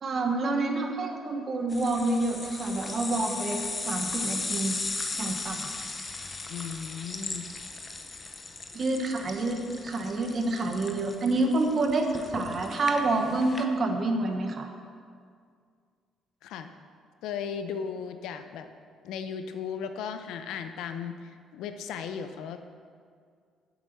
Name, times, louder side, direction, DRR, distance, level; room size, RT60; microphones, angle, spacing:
voice 1, 0.0-3.6 3.8-4.7 5.1-5.7 8.7-14.7, right 2 dB, 30° right, 4 dB, 1.2 m, -28 dB
sound 1, 1.7-13.6, left 3 dB, 20° left, 0.8 m, -37 dB
voice 2, 6.5-7.4 16.4-16.7 17.2-18.7 19.0-22.6, left 7 dB, 80° left, 8 dB, 0.8 m, -36 dB
10.0 x 8.0 x 6.7 m, 2.1 s
cardioid pair, 170°, 0 cm